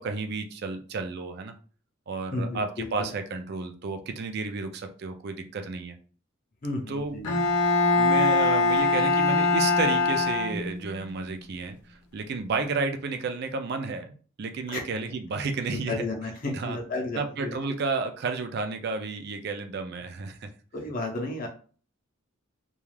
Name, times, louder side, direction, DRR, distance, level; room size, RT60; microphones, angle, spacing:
voice 1, 0.0-1.5 2.1-6.0 6.9-7.2 8.0-15.9 16.5-16.8 17.1-20.5, right 4 dB, 50° right, 7 dB, 0.4 m, -32 dB
voice 2, 2.3-3.1 6.6-7.3 14.7-14.8 15.7-17.6 20.7-21.5, left 2 dB, 40° left, 1 dB, 0.6 m, -32 dB
Bowed string instrument, 7.2-11.0, left 3 dB, 90° left, 0.6 m, -22 dB
2.4 x 2.3 x 3.2 m, 0.40 s
head